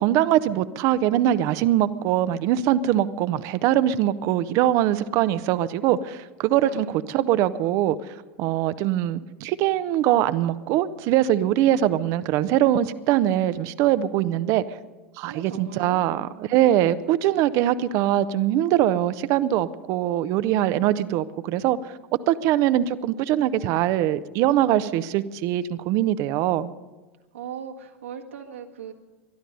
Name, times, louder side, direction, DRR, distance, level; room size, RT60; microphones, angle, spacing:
voice 1, 0.0-14.8 15.2-21.9 22.3-26.7, right 12 dB, 50° right, 14 dB, 0.7 m, -22 dB
voice 2, 6.6-6.9 15.2-16.1 27.3-28.9, right 7 dB, 80° right, 1 dB, 1.7 m, -38 dB
22.0 x 11.5 x 5.4 m, 1.2 s
hypercardioid pair, 85°, 7 cm